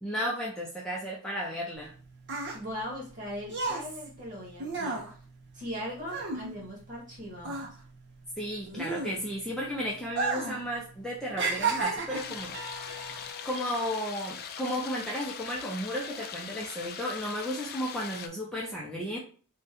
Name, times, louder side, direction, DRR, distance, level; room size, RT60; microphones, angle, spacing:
voice 1, 0.0-1.9 8.4-12.6 12.9-13.0 13.4-19.2, equal, 5° left, -4 dB, 0.7 m, -34 dB
sound 1, 1.8-7.1 7.4-9.5 10.1-10.7 10.9-12.4 13.1-13.3, right 4 dB, 50° right, 1.0 m, -33 dB
voice 2, 2.5-5.1 5.5-7.7, equal, 35° right, -3 dB, 1.9 m, -39 dB
sound 2, 11.4-15.3 15.8-16.9, left 1 dB, 70° right, 1.9 m, -50 dB
sound 3, 12.1-18.3, left 7 dB, 45° left, 0.4 m, -41 dB
3.7 x 2.4 x 4.2 m, 0.40 s
head